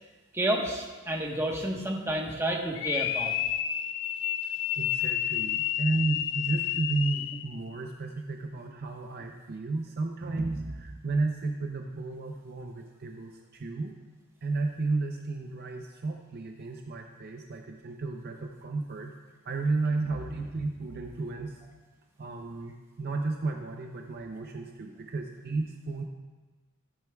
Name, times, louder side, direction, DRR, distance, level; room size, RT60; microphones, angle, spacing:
voice 1, 0.3-3.3, right 1 dB, 10° right, -1 dB, 1.1 m, -30 dB
sound 1, 2.7-7.5, left 11 dB, 65° left, 0.4 m, -30 dB
voice 2, 4.7-13.9 14.4-19.1 19.5-21.6 22.2-26.0, right 3 dB, 45° right, 3 dB, 0.6 m, -33 dB
14.0 x 8.8 x 2.3 m, 1.3 s
head